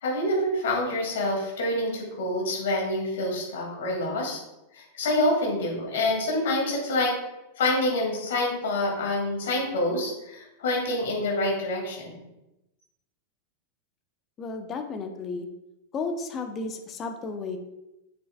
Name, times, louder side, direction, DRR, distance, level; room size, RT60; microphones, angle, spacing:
voice 1, 0.0-4.4 4.7-7.1 7.6-12.2, left 1 dB, 60° left, -1 dB, 2.4 m, -27 dB
voice 2, 14.4-15.5 15.9-17.6, left 4 dB, 25° left, 5 dB, 0.9 m, -33 dB
7.9 x 6.6 x 2.4 m, 0.93 s
figure-of-eight pair, 90°, 0 cm